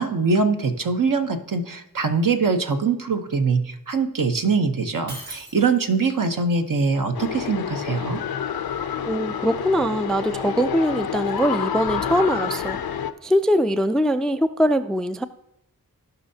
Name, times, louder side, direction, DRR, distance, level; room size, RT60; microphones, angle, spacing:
voice 1, 0.0-8.2, right 4 dB, 60° right, 6 dB, 1.0 m, -23 dB
Shatter, 5.1-6.1, right 2 dB, 85° right, 2.3 m, -39 dB
sound 1, 7.1-13.1, left 8 dB, 75° left, 0.6 m, -28 dB
voice 2, 9.0-12.8 13.2-15.2, equal, ahead, 11 dB, 0.4 m, -22 dB
16.0 x 5.5 x 2.8 m, 0.79 s
cardioid pair, 50°, 37 cm